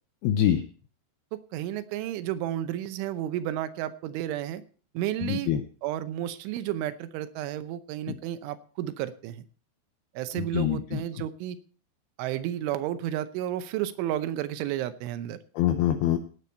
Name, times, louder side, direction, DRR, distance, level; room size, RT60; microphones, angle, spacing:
voice 1, 0.2-0.6 5.2-5.6 8.1-8.2 10.4-11.0 15.6-16.2, left 11 dB, 80° left, 8 dB, 2.2 m, -25 dB
voice 2, 1.3-4.6 4.9-5.5 5.8-9.5 10.1-11.6 12.2-15.4, right 12 dB, 85° right, 12 dB, 3.3 m, -32 dB
17.5 x 8.6 x 4.4 m, 0.41 s
omnidirectional pair, 5.4 m